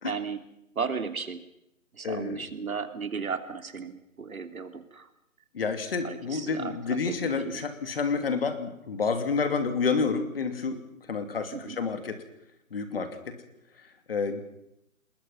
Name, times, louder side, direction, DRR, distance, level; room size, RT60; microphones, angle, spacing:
voice 1, 0.0-0.4 0.7-1.4 1.9-5.1 6.0-7.6 11.5-11.8, right 5 dB, 75° right, 8 dB, 3.0 m, -35 dB
voice 2, 2.0-2.5 5.5-10.8 11.1-12.2 12.7-13.4 13.8-14.4, left 5 dB, 40° left, 8 dB, 2.8 m, -29 dB
28.0 x 21.0 x 5.8 m, 0.82 s
hypercardioid pair, 170°, 42 cm